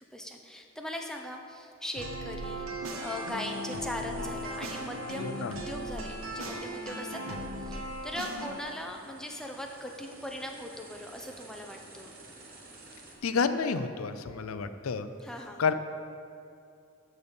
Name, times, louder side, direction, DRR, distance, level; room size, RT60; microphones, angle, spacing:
voice 1, 0.1-2.7 3.0-12.1 15.2-15.6, left 1 dB, 5° left, 2 dB, 0.7 m, -40 dB
sound 1, 2.0-8.5, equal, 85° right, 1.2 m, -37 dB
sound 2, 2.9-13.2, right 2 dB, 45° right, 1.4 m, -52 dB
voice 2, 5.2-5.5 13.2-15.1 15.6-15.7, left 5 dB, 85° left, 11 dB, 0.5 m, -29 dB
12.0 x 4.1 x 6.9 m, 2.5 s
head